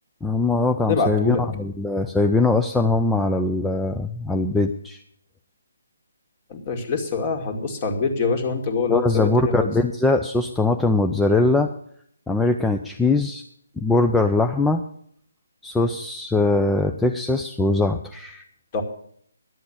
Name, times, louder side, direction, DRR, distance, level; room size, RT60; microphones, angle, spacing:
voice 1, 0.2-5.0 8.9-11.7 12.3-13.4 13.8-14.8 15.6-18.4, left 2 dB, 5° left, 4 dB, 0.5 m, -21 dB
voice 2, 0.9-1.4 6.5-9.7 18.7-18.8, left 4 dB, 30° left, 5 dB, 2.1 m, -24 dB
11.0 x 7.8 x 8.7 m, 0.64 s
figure-of-eight pair, 150°, 0 cm